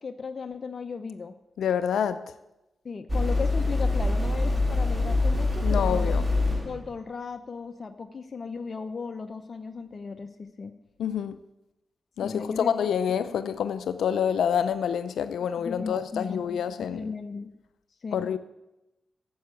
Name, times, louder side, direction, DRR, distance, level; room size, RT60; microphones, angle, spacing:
voice 1, 0.0-1.4 2.8-6.2 6.5-10.7 12.2-12.7 15.6-17.5 18.0-18.3, left 5 dB, 50° left, 0.8 m, -36 dB
voice 2, 1.6-2.2 5.6-6.3 11.0-11.4 12.2-17.1 18.1-18.4, left 8 dB, 85° left, 0.5 m, -27 dB
sound 1, 3.1-6.8, left 2 dB, 15° right, 2.3 m, -24 dB
10.0 x 7.8 x 8.5 m
cardioid pair, 50°, 0 cm